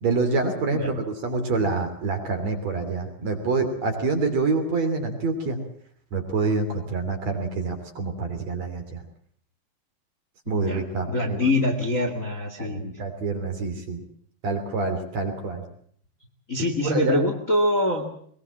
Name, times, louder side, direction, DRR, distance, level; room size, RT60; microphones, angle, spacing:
voice 1, 0.0-5.6 6.1-9.0 10.5-11.5 12.6-14.0 14.4-15.6 16.8-17.2, right 3 dB, 45° right, 5 dB, 4.0 m, -26 dB
voice 2, 10.5-12.9 16.5-18.0, left 1 dB, 25° left, 4 dB, 1.9 m, -24 dB
21.5 x 21.5 x 7.5 m, 0.62 s
omnidirectional pair, 4.5 m